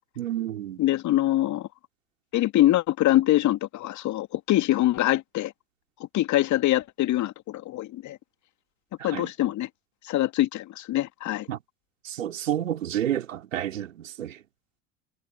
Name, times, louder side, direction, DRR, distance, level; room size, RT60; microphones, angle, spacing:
voice 1, 0.2-0.8 9.0-9.3 11.5-11.6 12.0-14.4, right 11 dB, 75° right, 3.9 m, -30 dB
voice 2, 0.8-1.7 2.3-5.5 6.1-8.2 9.0-9.7 10.1-11.5, left 15 dB, 50° left, 2.6 m, -24 dB
figure-of-eight pair, 65°, 38 cm